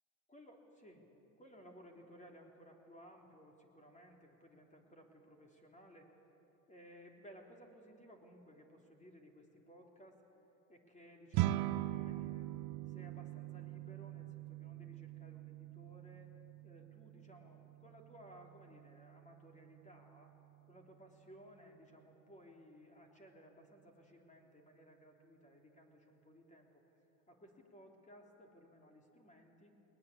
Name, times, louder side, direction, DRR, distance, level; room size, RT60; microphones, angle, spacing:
voice 1, 0.3-1.1 1.4-6.1 6.7-10.2 10.7-12.5 12.9-16.3 16.6-20.4 20.7-26.8 27.3-29.7, equal, 15° left, 2 dB, 3.4 m, -59 dB
sound 1, 11.3-20.8, right 15 dB, 55° right, 0.7 m, -42 dB
20.5 x 20.0 x 8.6 m, 3.0 s
supercardioid pair, 95°, 41 cm